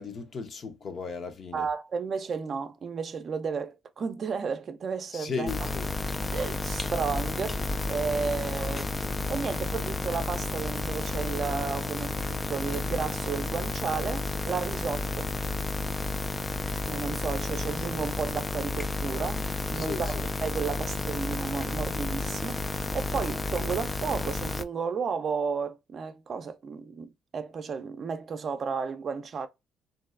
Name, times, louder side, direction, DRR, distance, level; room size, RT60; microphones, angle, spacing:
voice 1, 0.0-1.7 5.1-5.9 19.7-20.3, left 5 dB, 50° left, 0.7 m, -36 dB
voice 2, 1.5-5.5 6.3-8.9 9.3-15.3 16.9-29.5, right 5 dB, 50° right, 0.5 m, -33 dB
sound 1, 5.5-24.6, left 3 dB, 25° left, 0.3 m, -31 dB
3.0 x 2.6 x 2.4 m
cardioid pair, 90°, 0 cm